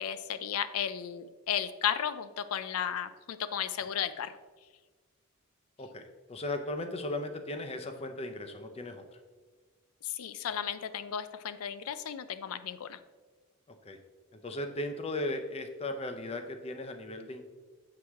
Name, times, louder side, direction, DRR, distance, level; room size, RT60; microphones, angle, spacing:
voice 1, 0.0-4.3 10.0-13.0, left 9 dB, 80° left, 12 dB, 0.4 m, -34 dB
voice 2, 5.8-9.2 13.7-14.0 14.4-17.4, left 1 dB, 30° left, 7 dB, 0.5 m, -37 dB
7.5 x 4.8 x 3.5 m, 1.4 s
head